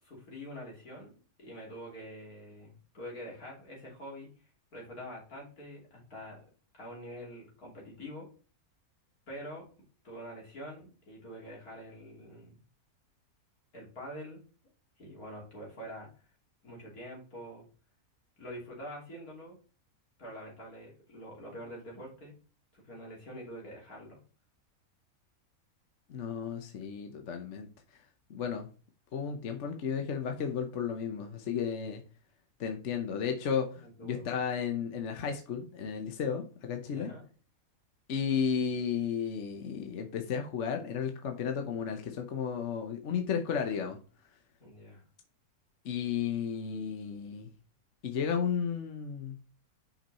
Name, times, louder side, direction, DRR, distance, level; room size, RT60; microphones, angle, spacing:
voice 1, 0.0-1.1 1.4-4.3 4.7-6.4 6.7-8.3 9.3-9.6 10.0-12.6 13.7-14.4 15.0-16.1 16.6-17.7 18.4-19.6 20.2-22.3 22.7-24.2 33.8-34.2 36.8-37.2 44.6-45.0, equal, 80° left, -2 dB, 3.4 m, -45 dB
voice 2, 26.1-27.7 28.3-28.7 29.1-32.0 32.6-37.1 38.1-44.0 45.8-47.5 48.0-49.4, left 7 dB, 55° left, 4 dB, 1.1 m, -33 dB
6.0 x 5.4 x 4.1 m, 0.36 s
omnidirectional pair, 1.6 m